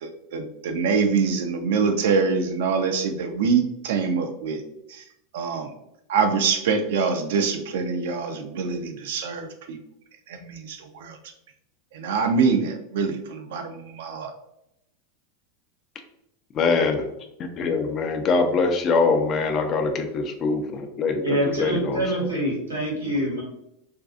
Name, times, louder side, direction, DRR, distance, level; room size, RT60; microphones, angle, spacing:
voice 1, 0.0-4.6 4.9-5.0 5.3-5.7 6.1-9.8 10.3-11.2 11.9-14.3, right 5 dB, 65° right, 6 dB, 0.4 m, -25 dB
voice 2, 16.5-17.0 17.6-22.0, left 4 dB, 40° left, 5 dB, 0.4 m, -23 dB
voice 3, 21.2-23.4, right 1 dB, 85° right, -4 dB, 1.0 m, -25 dB
2.5 x 2.3 x 2.4 m, 0.80 s
hypercardioid pair, 90°, 0 cm